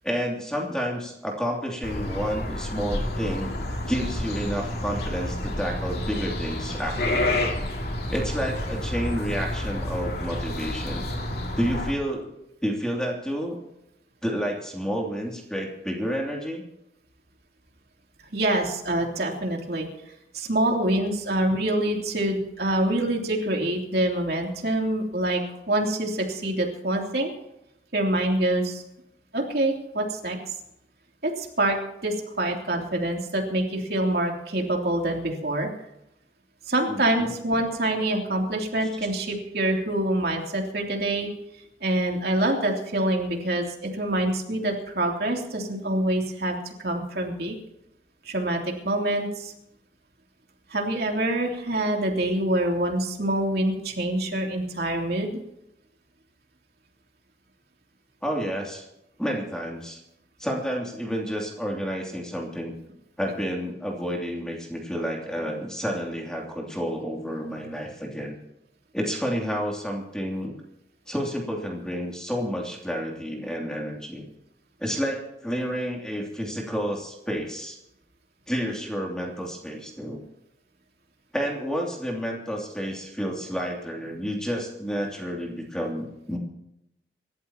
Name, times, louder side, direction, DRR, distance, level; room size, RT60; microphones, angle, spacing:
voice 1, 0.0-7.4 8.1-11.1 11.6-12.3 12.6-13.6 14.2-16.7 36.9-37.0 58.2-58.9 59.2-60.0 60.4-62.7 63.2-68.4 68.9-70.5 71.1-74.3 74.8-77.8 78.5-80.2 81.3-86.4, equal, 5° left, -1 dB, 2.7 m, -30 dB
sound 1, 1.8-11.9, left 1 dB, 60° left, 2.5 m, -29 dB
voice 2, 18.3-27.3 27.9-28.8 29.3-30.4 31.2-35.7 36.7-41.3 41.8-47.6 48.2-49.5 50.7-55.4, right 1 dB, 60° right, 1 dB, 3.1 m, -26 dB
26.0 x 13.5 x 2.9 m, 0.84 s
head